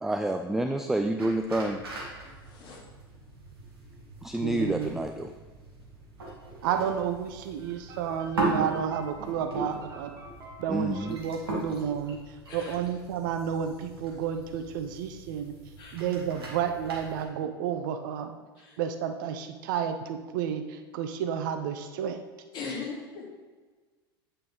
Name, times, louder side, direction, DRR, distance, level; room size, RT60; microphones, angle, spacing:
voice 1, 0.0-1.8 4.2-5.3 10.7-11.2, right 1 dB, 5° right, 6 dB, 0.3 m, -28 dB
sound 1, 1.2-17.2, right 2 dB, 70° right, 1.8 m, -39 dB
voice 2, 2.2-2.8 12.5-12.8 15.8-16.0 18.6-18.8 22.5-23.2, left 4 dB, 35° left, -3 dB, 2.2 m, -39 dB
voice 3, 4.4-4.9 6.6-10.2 10.6-12.2 12.5-15.5 15.9-18.3 18.8-22.2, right 8 dB, 55° right, 7 dB, 0.6 m, -31 dB
sound 2, 7.6-12.2, right 2 dB, 25° right, 1.7 m, -50 dB
9.0 x 5.6 x 3.3 m, 1.4 s
figure-of-eight pair, 80°, 13 cm